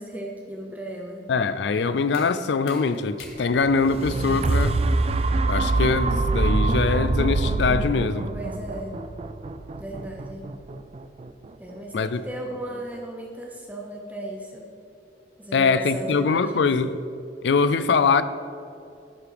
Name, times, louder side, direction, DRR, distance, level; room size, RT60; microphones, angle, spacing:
voice 1, 0.0-1.3 8.3-9.0 9.8-10.5 11.6-14.7 15.4-16.7, right 1 dB, 10° right, 0.8 m, -36 dB
voice 2, 1.3-4.8 5.5-8.3 11.9-12.2 15.5-16.9 17.4-18.2, left 4 dB, 75° left, 0.4 m, -22 dB
sound 1, 1.4-7.2, left 2 dB, 60° left, 1.6 m, -49 dB
sound 2, 3.6-11.7 12.3-12.4, right 3 dB, 35° right, 0.3 m, -25 dB
11.0 x 5.0 x 5.0 m
head